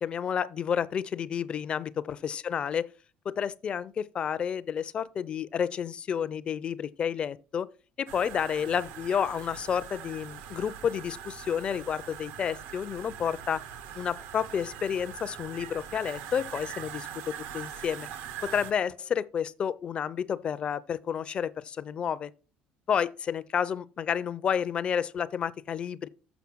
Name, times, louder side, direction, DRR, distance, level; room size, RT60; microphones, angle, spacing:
voice 1, 0.0-2.9 3.3-7.7 8.0-13.6 13.9-18.1 18.4-22.3 22.9-26.1, left 8 dB, 35° left, 0.5 m, -30 dB
sound 1, 8.1-18.7, right 9 dB, 75° right, 0.9 m, -42 dB
7.1 x 5.6 x 6.1 m
cardioid pair, 140°, 3 cm